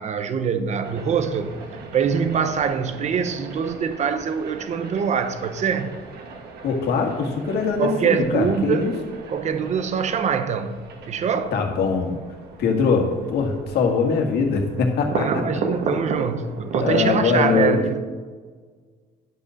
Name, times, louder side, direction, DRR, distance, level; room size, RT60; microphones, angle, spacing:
voice 1, 0.0-1.6 1.9-5.9 7.8-8.9 9.3-11.5 15.1-18.0, right 7 dB, 45° right, 0.9 m, -24 dB
sound 1, 0.8-17.2, right 4 dB, 70° right, 1.6 m, -35 dB
voice 2, 6.6-8.9 11.5-12.2 12.6-15.4 16.8-17.8, left 5 dB, 75° left, 1.9 m, -22 dB
11.0 x 5.5 x 6.3 m
cardioid pair, 110°, 17 cm